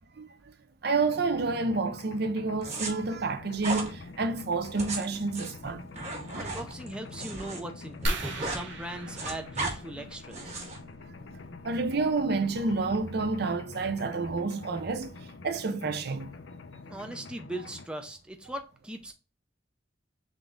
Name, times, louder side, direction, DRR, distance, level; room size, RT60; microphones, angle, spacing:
voice 1, 0.8-5.8 6.1-6.2 11.6-15.1 15.4-16.3, right 3 dB, 60° right, 0.6 m, -29 dB
Mechanisms, 1.0-17.9, left 3 dB, 75° left, 0.6 m, -46 dB
sound 1, 2.6-2.9 3.6-3.9 4.6-7.6 7.9-8.6 8.9-9.7 10.3-10.8, right 3 dB, 40° right, 1.4 m, -35 dB
voice 2, 6.3-10.6 16.9-19.1, right 1 dB, 5° right, 0.5 m, -40 dB
sound 2, 8.0-10.4 12.0-12.2 12.8-12.9 13.2-13.4, right 1 dB, 80° right, 1.5 m, -35 dB
3.8 x 3.5 x 3.8 m
head